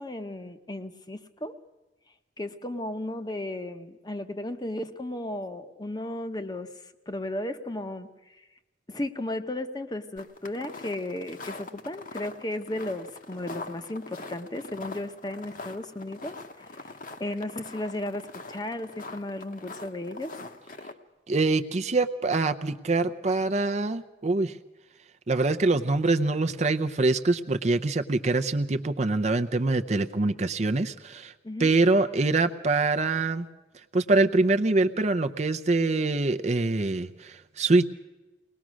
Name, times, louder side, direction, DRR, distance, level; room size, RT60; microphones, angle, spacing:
voice 1, 0.0-1.6 2.4-6.7 7.1-8.4 8.9-16.7 17.2-20.4 31.4-31.7, left 1 dB, 25° left, 8 dB, 0.9 m, -35 dB
sound 1, 10.2-20.9, left 3 dB, 50° left, 1.1 m, -43 dB
voice 2, 21.3-24.6 25.3-31.3 31.6-33.5 33.9-37.9, right 3 dB, 40° right, 8 dB, 0.6 m, -24 dB
22.0 x 19.0 x 6.2 m, 1.1 s
head